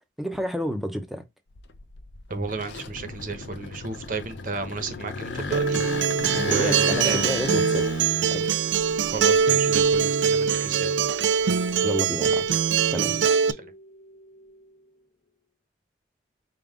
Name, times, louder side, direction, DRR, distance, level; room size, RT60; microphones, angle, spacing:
voice 1, 0.2-1.2 6.5-7.8 8.3-8.5 11.8-12.4 12.8-13.1, equal, ahead, 0.7 m, -29 dB
sound 1, 1.5-10.6 11.0-12.9, left 4 dB, 80° left, 0.6 m, -35 dB
voice 2, 2.3-5.8 6.3-7.2 9.1-10.9 12.9-13.7, right 4 dB, 45° right, 0.8 m, -33 dB
sound 2, 4.6-15.3, equal, 40° left, 1.1 m, -45 dB
Acoustic guitar, 5.5-13.5, right 7 dB, 80° right, 0.4 m, -23 dB
5.3 x 2.3 x 3.6 m
head